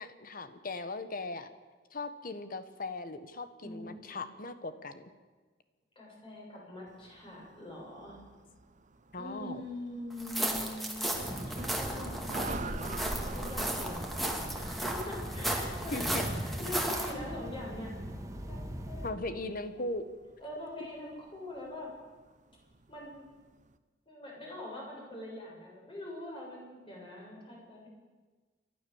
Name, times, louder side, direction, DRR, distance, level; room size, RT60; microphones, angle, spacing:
voice 1, 0.0-1.5 1.9-5.1 9.1-9.6 15.9-16.2 19.0-20.1, left 2 dB, 50° left, 11 dB, 1.4 m, -38 dB
voice 2, 3.6-4.3 6.0-8.2 9.2-10.9 11.5-13.0 13.3-14.0 14.5-17.9 18.5-19.5 19.7-19.9 20.4-21.9 22.9-23.3 24.1-27.9, left 1 dB, 30° left, -3 dB, 7.5 m, -43 dB
sound 1, 6.9-23.8, right 3 dB, 45° right, 1.0 m, -48 dB
sound 2, 10.2-17.1, right 1 dB, ahead, 2.4 m, -35 dB
sound 3, 11.1-19.1, equal, 20° right, 1.8 m, -40 dB
29.5 x 12.5 x 7.2 m, 1.3 s
head